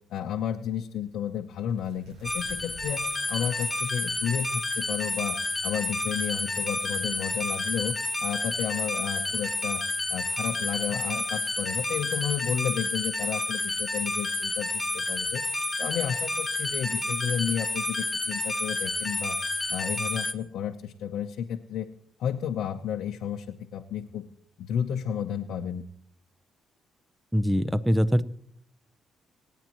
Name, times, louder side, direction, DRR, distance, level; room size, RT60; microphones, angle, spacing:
voice 1, 0.1-7.9 8.2-9.8 10.1-19.4 19.7-21.9 22.2-24.2 24.6-25.8, left 9 dB, 80° left, 2 dB, 0.8 m, -32 dB
sound 1, 1.6-7.4, right 1 dB, 90° right, 6.5 m, -53 dB
sound 2, 2.2-20.3, left 2 dB, 10° left, 1.2 m, -30 dB
voice 2, 27.3-28.2, equal, 5° right, 14 dB, 0.7 m, -23 dB
27.0 x 9.2 x 3.0 m, 0.67 s
cardioid pair, 90°, 0 cm